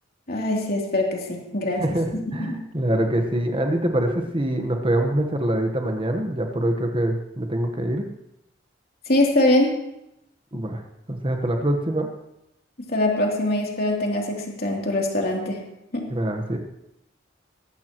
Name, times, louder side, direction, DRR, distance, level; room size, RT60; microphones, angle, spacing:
voice 1, 0.3-1.8 2.3-2.6 9.1-9.7 12.9-15.6 15.9-16.1, left 1 dB, 55° left, -1 dB, 3.1 m, -23 dB
voice 2, 1.8-8.1 10.5-10.8 11.1-12.1 16.1-16.6, right 1 dB, 30° right, 4 dB, 1.3 m, -24 dB
19.5 x 15.5 x 3.1 m, 0.85 s
head